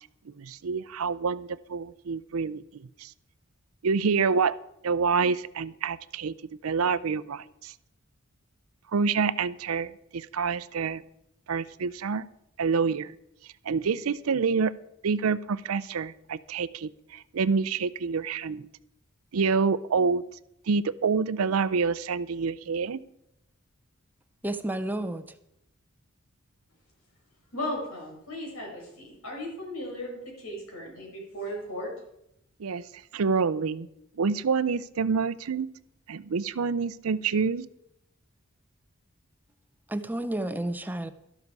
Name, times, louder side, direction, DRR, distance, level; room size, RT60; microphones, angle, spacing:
voice 1, 0.3-3.1 3.8-4.6 4.8-6.3 6.6-7.7 8.9-11.0 11.5-12.3 12.6-13.1 13.7-14.7 15.0-18.7 19.3-20.2 20.7-23.0 32.6-32.8 33.1-33.9 34.2-35.7 36.1-37.7, right 5 dB, 85° right, 17 dB, 0.5 m, -27 dB
voice 2, 24.4-25.2 39.9-41.1, right 1 dB, 10° right, 10 dB, 0.5 m, -31 dB
voice 3, 27.5-31.9, left 1 dB, 85° left, -1 dB, 5.6 m, -36 dB
12.5 x 12.0 x 4.7 m, 0.80 s
head